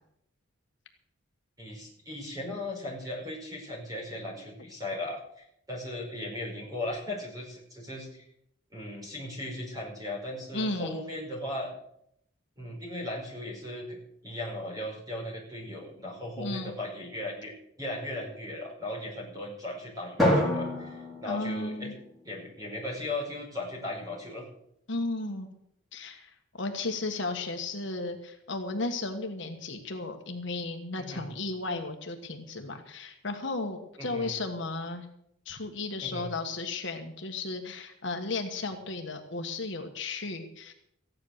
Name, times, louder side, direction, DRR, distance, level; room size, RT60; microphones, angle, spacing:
voice 1, 1.6-8.2 8.7-11.7 12.6-14.0 14.2-21.9 22.2-24.4 31.0-31.3 34.0-34.3 36.0-36.3, left 1 dB, 15° right, -2 dB, 5.2 m, -37 dB
voice 2, 10.5-11.0 16.4-16.7 21.2-21.9 24.9-25.5 25.9-26.3 26.6-35.1 35.4-40.7, left 2 dB, 60° left, 5 dB, 1.4 m, -34 dB
Drum, 20.2-22.5, left 1 dB, ahead, 4.1 m, -28 dB
15.0 x 10.5 x 6.6 m, 0.75 s
head